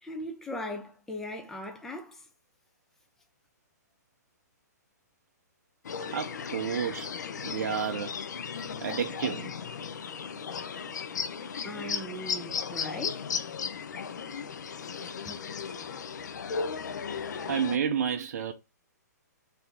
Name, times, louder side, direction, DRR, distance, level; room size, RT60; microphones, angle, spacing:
voice 1, 0.0-2.2 11.6-13.3 15.3-15.4, left 1 dB, 5° left, 0.6 m, -39 dB
sound 1, 5.8-17.8, left 6 dB, 75° left, 0.6 m, -36 dB
voice 2, 6.1-7.1 7.4-8.1 8.8-9.5 17.5-18.5, right 8 dB, 60° right, 0.5 m, -30 dB
4.1 x 2.8 x 3.3 m
hypercardioid pair, 150°, 10 cm